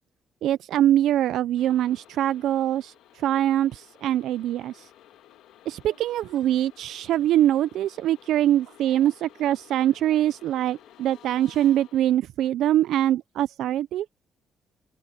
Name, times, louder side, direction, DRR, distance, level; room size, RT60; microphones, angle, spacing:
voice 1, 0.4-4.9 5.7-14.1, right 12 dB, 80° right, 0.4 m, -23 dB
sound 1, 1.6-12.2, left 12 dB, 85° left, 2.3 m, -54 dB
open air
cardioid pair, 90°, 0 cm